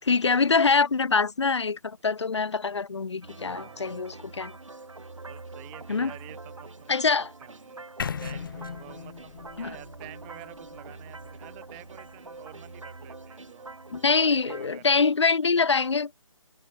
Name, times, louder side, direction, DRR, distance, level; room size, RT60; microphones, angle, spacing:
voice 1, 0.0-4.5 5.9-6.1 6.9-7.3 9.6-9.8 13.9-16.1, left 4 dB, 60° left, 2.9 m, -24 dB
sound 1, 3.2-14.7, right 3 dB, 70° right, 3.9 m, -45 dB
voice 2, 3.4-4.0 5.3-7.8 8.2-13.8 14.2-15.2, right 32 dB, 15° right, 4.5 m, -49 dB
sound 2, 8.0-12.0, left 7 dB, 40° left, 1.6 m, -38 dB
figure-of-eight pair, 150°, 17 cm